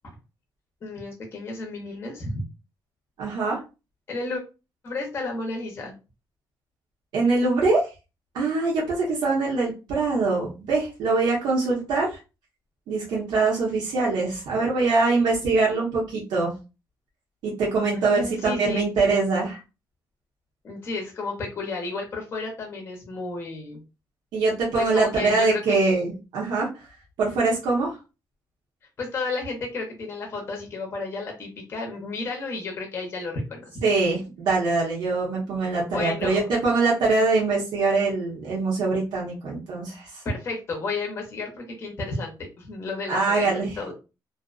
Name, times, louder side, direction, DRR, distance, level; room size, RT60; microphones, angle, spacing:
voice 1, 0.8-2.4 4.1-4.4 4.8-5.9 17.9-18.8 20.6-23.8 24.7-25.8 29.0-33.8 35.8-36.4 40.2-43.5 43.8-43.9, left 3 dB, 30° left, 1 dB, 0.6 m, -32 dB
voice 2, 3.2-3.6 7.1-7.9 8.3-12.2 12.9-16.5 17.4-19.6 24.3-26.8 27.2-28.0 33.8-40.2 43.1-43.7, right 3 dB, 70° right, -5 dB, 0.9 m, -23 dB
2.5 x 2.1 x 2.4 m, 0.29 s
cardioid pair, 170°, 8 cm